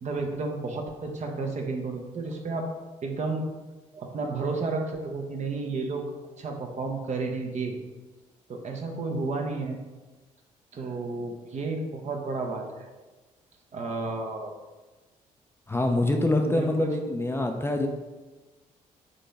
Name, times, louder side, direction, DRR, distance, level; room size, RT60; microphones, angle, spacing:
voice 1, 0.0-2.7 3.0-3.4 3.9-6.0 6.4-7.8 8.5-9.8 10.7-12.9 13.7-14.5 16.2-16.9, right 3 dB, 40° right, 3 dB, 0.8 m, -32 dB
voice 2, 15.7-17.9, left 2 dB, 15° left, 3 dB, 0.5 m, -25 dB
4.0 x 3.9 x 3.4 m, 1.2 s
figure-of-eight pair, 45°, 17 cm